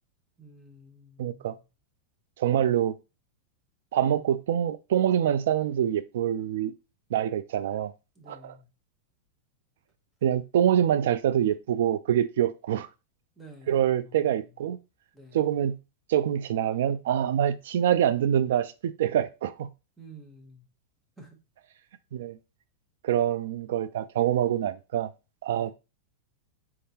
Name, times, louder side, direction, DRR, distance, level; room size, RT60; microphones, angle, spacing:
voice 1, 0.4-1.6 8.2-8.7 13.4-14.3 15.1-15.4 20.0-20.7 21.2-21.4 25.5-25.7, right 1 dB, 10° right, 1.0 m, -50 dB
voice 2, 1.2-1.6 2.4-3.0 3.9-6.7 7.1-7.9 8.3-8.6 10.2-12.9 13.7-14.8 15.3-15.8 16.1-19.7 22.1-22.4 23.0-25.1 25.4-25.7, right 10 dB, 75° right, 0.3 m, -25 dB
4.5 x 3.6 x 2.8 m
supercardioid pair, 160°, 0 cm